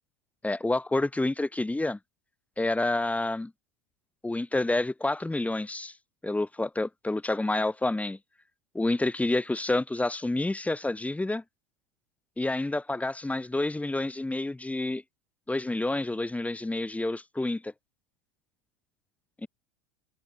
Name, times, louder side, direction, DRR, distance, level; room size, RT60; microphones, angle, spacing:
voice 1, 0.4-2.0 2.6-3.5 4.2-5.9 6.2-8.2 8.7-11.4 12.4-15.0 15.5-17.7 19.4-19.5, left 2 dB, 10° left, 7.4 m, -28 dB
hypercardioid pair, 90°, 16 cm